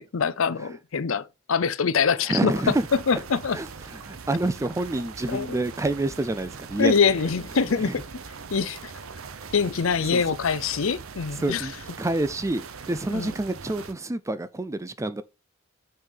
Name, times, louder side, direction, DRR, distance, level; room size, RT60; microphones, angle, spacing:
voice 1, 0.0-2.5 3.1-3.6 5.3-5.5 6.8-8.0 8.5-8.9 9.5-11.7 13.1-13.3, left 5 dB, 70° left, 0.6 m, -24 dB
voice 2, 2.3-2.9 3.5-6.9 7.8-8.0 10.1-10.2 11.4-11.7 12.0-15.2, right 2 dB, 15° right, 0.4 m, -28 dB
sound 1, 2.5-13.9, right 5 dB, 85° right, 0.8 m, -41 dB
6.2 x 4.6 x 5.4 m
head